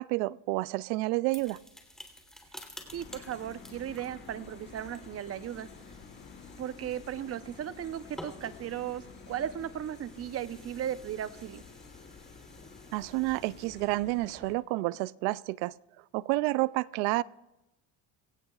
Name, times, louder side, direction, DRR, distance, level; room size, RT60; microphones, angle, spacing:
voice 1, 0.0-1.6 12.9-15.7 16.1-17.2, right 20 dB, 80° right, 21 dB, 0.5 m, -29 dB
sound 1, 1.3-13.7, left 1 dB, ahead, 3.4 m, -52 dB
sound 2, 2.8-14.5, left 4 dB, 30° left, 2.4 m, -51 dB
voice 2, 2.9-5.7 6.6-11.6, right 10 dB, 40° right, 13 dB, 0.8 m, -36 dB
sound 3, 3.0-11.3, left 7 dB, 85° left, 5.1 m, -55 dB
24.5 x 17.5 x 2.4 m, 0.96 s
supercardioid pair, 90°, 36 cm